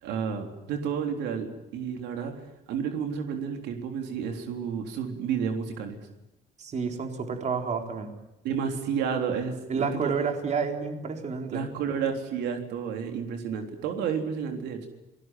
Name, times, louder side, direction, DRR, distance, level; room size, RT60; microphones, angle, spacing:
voice 1, 0.0-2.3 2.7-6.0 8.4-10.1 11.5-14.9, right 7 dB, 85° right, 5 dB, 3.6 m, -31 dB
voice 2, 6.6-8.1 9.7-11.6, right 5 dB, 45° right, 5 dB, 4.0 m, -30 dB
28.5 x 19.0 x 9.2 m, 0.96 s
cardioid pair, 110°, 17 cm